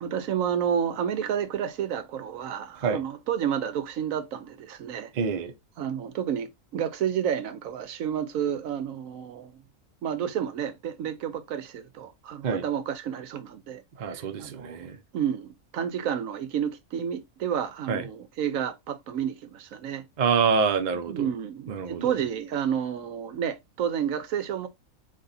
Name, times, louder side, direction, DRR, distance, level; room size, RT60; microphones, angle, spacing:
voice 1, 0.0-5.1 5.8-9.6 10.0-13.8 14.1-20.1 21.1-24.7, right 8 dB, 75° right, 1.0 m, -30 dB
voice 2, 5.1-5.5 12.4-12.6 14.0-15.0 17.9-18.0 20.2-21.3 21.7-22.2, right 5 dB, 55° right, 0.5 m, -26 dB
4.0 x 3.4 x 2.6 m
omnidirectional pair, 1.5 m